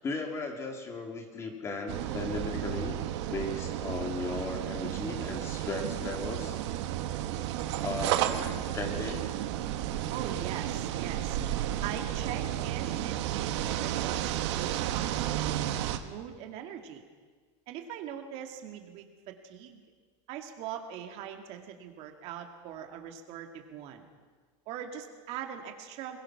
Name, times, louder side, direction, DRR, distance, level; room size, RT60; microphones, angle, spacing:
voice 1, 0.0-3.0 3.3-6.6 7.8-9.3 11.4-11.5, left 3 dB, 15° left, 3 dB, 2.4 m, -36 dB
sound 1, 1.9-16.0, right 12 dB, 60° right, 1.4 m, -32 dB
voice 2, 10.1-11.4 11.8-15.5 16.0-17.0 17.7-19.8 20.3-24.1 24.7-26.2, right 9 dB, 40° right, 4 dB, 2.3 m, -41 dB
22.0 x 21.5 x 6.0 m, 1.5 s
supercardioid pair, 170°, 16 cm